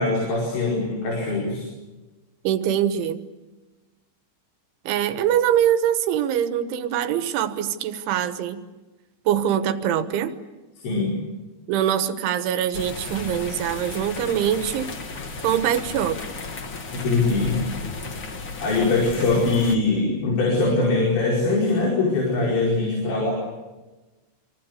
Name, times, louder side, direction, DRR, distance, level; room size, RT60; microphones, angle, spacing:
voice 1, 0.0-1.6 10.8-11.1 16.9-17.6 18.6-23.3, left 3 dB, 70° left, -2 dB, 7.2 m, -22 dB
voice 2, 2.5-3.3 4.9-8.6 9.3-10.3 11.7-14.9 15.4-16.2, right 10 dB, 80° right, 10 dB, 3.7 m, -23 dB
sound 1, 12.7-19.8, left 3 dB, 50° left, 1.5 m, -34 dB
26.5 x 25.0 x 8.4 m, 1.2 s
omnidirectional pair, 5.4 m